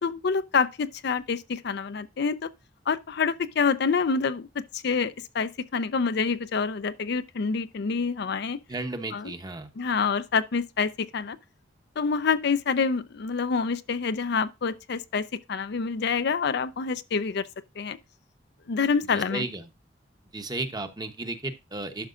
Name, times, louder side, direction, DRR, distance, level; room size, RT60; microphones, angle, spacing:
voice 1, 0.0-2.5 2.9-8.6 9.1-9.3 9.8-11.4 12.0-17.5 17.8-18.0 18.7-19.5, left 5 dB, 60° left, 0.5 m, -27 dB
voice 2, 8.7-9.7 19.1-19.7 20.3-22.1, right 2 dB, 20° right, 0.9 m, -34 dB
11.5 x 6.0 x 2.5 m
head